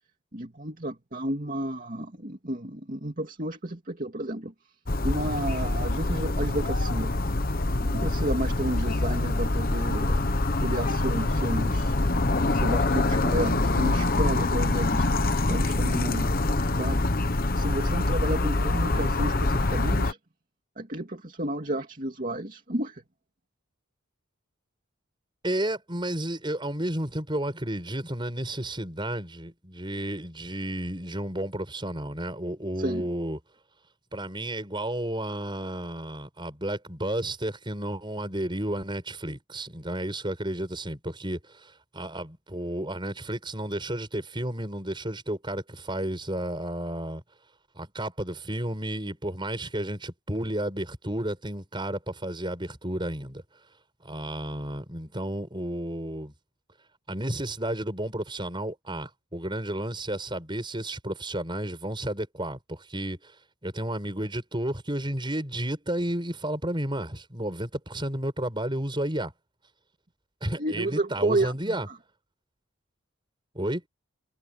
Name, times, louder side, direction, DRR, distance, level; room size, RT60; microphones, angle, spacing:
voice 1, 0.3-4.5 5.0-7.1 7.9-10.2 10.6-11.9 12.6-15.1 15.5-16.3 16.8-17.1 17.6-20.2 20.8-23.0 32.8-33.0 70.6-71.7, right 1 dB, 40° right, 2.6 m, -31 dB
sound 1, 4.9-20.1, left 2 dB, 45° left, 1.2 m, -25 dB
voice 2, 25.4-33.4 34.1-47.2 47.8-53.4 54.0-56.3 57.1-63.3 63.6-69.3 70.4-71.9 73.5-73.8, right 1 dB, 20° right, 7.2 m, -32 dB
head